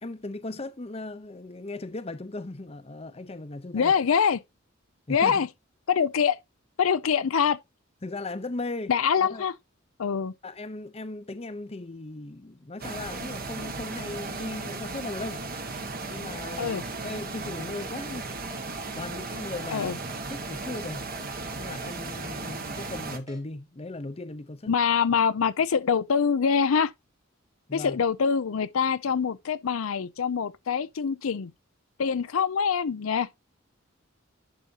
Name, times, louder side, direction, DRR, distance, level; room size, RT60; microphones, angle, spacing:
voice 1, 0.0-3.9 5.1-5.4 8.0-9.4 10.4-15.4 16.0-18.3 18.9-21.1 21.6-24.7 27.7-28.0, left 2 dB, 30° left, 0.8 m, -37 dB
voice 2, 3.7-4.4 5.1-5.5 5.9-6.4 6.8-7.6 8.9-9.5 10.0-10.3 16.6-16.8 19.7-20.0 24.7-26.9 27.7-31.5 32.0-33.3, left 6 dB, 85° left, 0.5 m, -24 dB
sound 1, 12.8-23.2, right 3 dB, 45° right, 1.4 m, -36 dB
Keyboard (musical), 17.4-17.6 18.0-18.1 18.5-18.6 19.0-19.2 19.6-19.7 20.1-20.2 20.6-20.8 21.2-21.3 21.7-21.8 22.2-22.3 22.7-22.9 23.3-23.4, left 2 dB, 20° right, 1.6 m, -49 dB
11.0 x 5.2 x 2.8 m
head